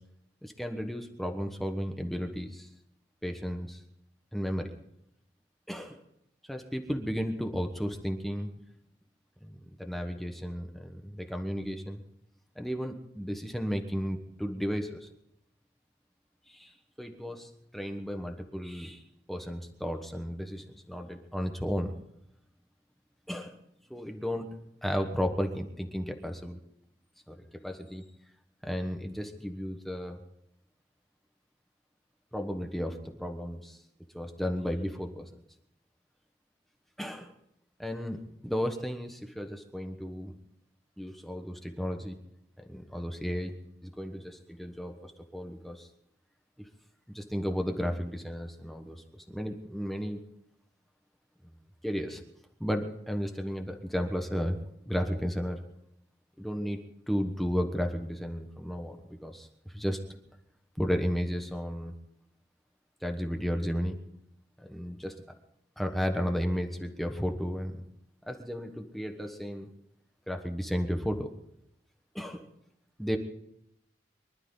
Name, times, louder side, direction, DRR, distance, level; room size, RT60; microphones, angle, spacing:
voice 1, 0.4-2.7 3.2-3.8 4.3-4.7 5.7-6.0 6.5-8.5 9.4-12.0 12.5-15.1 16.5-19.0 19.3-21.9 23.3-23.5 23.9-26.6 27.3-28.0 28.6-30.2 32.3-33.8 34.1-35.3 37.0-37.3 37.8-40.3 41.0-42.2 42.7-43.5 43.8-45.9 46.6-46.7 47.1-50.2 51.8-52.2 52.6-54.6 54.8-55.6 56.4-56.8 57.1-60.0 60.8-61.9 63.0-64.0 64.6-65.2 65.8-67.8 68.3-69.7 70.3-71.3 72.1-72.5 73.0-73.2, equal, ahead, 4 dB, 1.2 m, -34 dB
24.0 x 12.0 x 4.0 m, 0.79 s
head